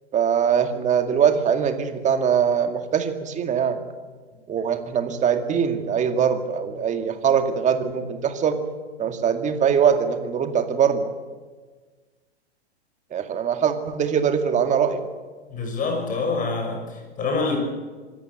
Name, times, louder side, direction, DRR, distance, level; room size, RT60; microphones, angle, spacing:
voice 1, 0.1-3.8 4.5-8.6 9.0-11.1 13.1-15.1, right 7 dB, 20° right, 7 dB, 2.2 m, -22 dB
voice 2, 15.5-17.6, left 4 dB, 25° left, 3 dB, 5.9 m, -26 dB
24.5 x 13.5 x 9.6 m, 1.4 s
hypercardioid pair, 115°, 33 cm